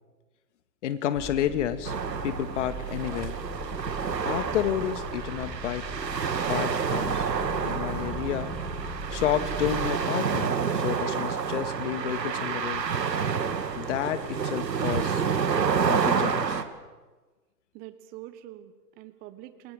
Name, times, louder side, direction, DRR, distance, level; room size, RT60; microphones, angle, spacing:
voice 1, 0.8-1.9 2.2-3.4 4.2-5.8 6.5-7.3 7.6-8.5 9.1-10.6 10.8-12.8 13.8-15.2 15.8-16.6, left 10 dB, 45° left, 10 dB, 1.9 m, -30 dB
sound 1, 1.1-9.9, equal, ahead, 1.4 m, -40 dB
sound 2, 1.8-16.6, right 6 dB, 85° right, 2.0 m, -29 dB
voice 2, 17.7-19.7, right 14 dB, 20° right, 12 dB, 1.0 m, -45 dB
28.0 x 21.5 x 5.0 m, 1.3 s
hypercardioid pair, 140°, 48 cm